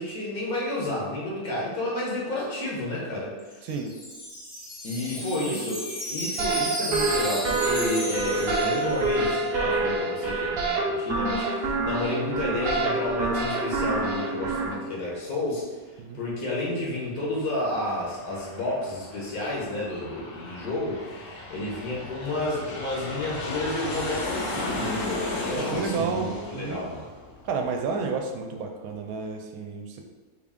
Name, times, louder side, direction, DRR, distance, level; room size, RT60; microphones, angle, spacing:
voice 1, 0.0-3.6 4.8-15.6 16.1-27.1, left 1 dB, 80° left, -4 dB, 1.5 m, -31 dB
Wind chime, 3.4-9.4, equal, 45° left, 0.6 m, -34 dB
sound 1, 6.4-14.7, right 3 dB, 55° right, 0.7 m, -27 dB
Aircraft, 17.1-28.3, left 2 dB, 65° left, 1.0 m, -36 dB
voice 2, 25.6-26.8 27.5-30.0, right 5 dB, 80° right, 3 dB, 1.0 m, -31 dB
3.7 x 2.4 x 3.5 m, 1.3 s
omnidirectional pair, 1.5 m